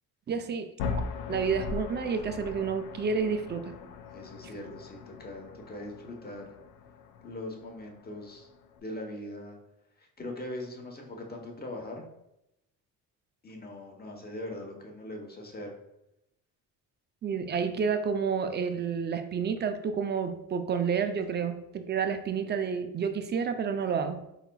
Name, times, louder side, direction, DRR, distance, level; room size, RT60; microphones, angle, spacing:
voice 1, 0.3-1.0 1.3-3.7 17.2-24.2, right 6 dB, 30° right, 8 dB, 0.4 m, -30 dB
sound 1, 0.8-8.8, left 5 dB, 90° left, 0.5 m, -40 dB
voice 2, 4.1-6.5 7.2-8.5 8.8-9.6 10.0-12.0 13.4-15.7, left 1 dB, 25° left, 1 dB, 0.9 m, -41 dB
4.2 x 4.0 x 2.2 m, 0.85 s
cardioid pair, 95°, 36 cm